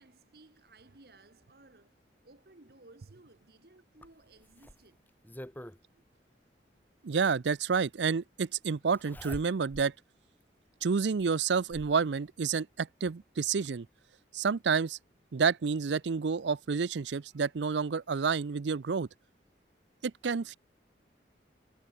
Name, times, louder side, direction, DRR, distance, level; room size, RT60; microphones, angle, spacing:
voice 1, 0.0-5.1, right 2 dB, 60° right, 1.6 m, -58 dB
Zipper (clothing), 4.0-5.8 7.2-7.3 8.9-9.9 10.4-10.5 11.2-12.0 13.2-13.3 13.6-13.7, equal, 10° left, 1.7 m, -47 dB
voice 2, 7.0-9.9 10.8-13.9 14.3-15.0 15.3-19.1 20.0-20.6, right 5 dB, 80° right, 0.5 m, -29 dB
head